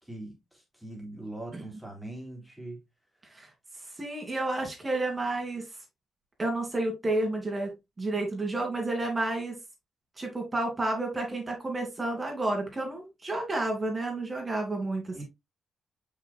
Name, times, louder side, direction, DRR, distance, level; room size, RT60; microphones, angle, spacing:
voice 1, 0.0-2.8 15.1-15.2, right 1 dB, ahead, 3.4 m, -42 dB
voice 2, 4.0-5.7 6.4-9.6 10.2-15.2, right 2 dB, 25° right, 3.1 m, -31 dB
6.6 x 6.0 x 2.4 m
cardioid pair, 115°, 0 cm